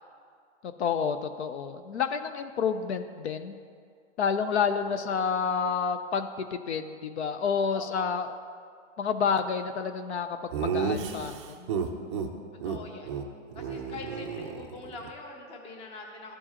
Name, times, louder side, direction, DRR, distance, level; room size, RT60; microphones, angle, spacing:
voice 1, 0.8-3.5 4.2-8.3 9.0-11.7, left 6 dB, 60° left, 9 dB, 0.6 m, -29 dB
voice 2, 4.9-5.2 7.7-8.1 12.6-13.2 13.5-16.4, left 3 dB, 15° left, 2 dB, 0.8 m, -43 dB
Laughter, 10.5-12.3 12.6-12.8 13.1-13.2 13.5-15.1, right 6 dB, 25° right, 0.4 m, -32 dB
13.5 x 4.5 x 2.9 m, 2.2 s
hypercardioid pair, 150°, 37 cm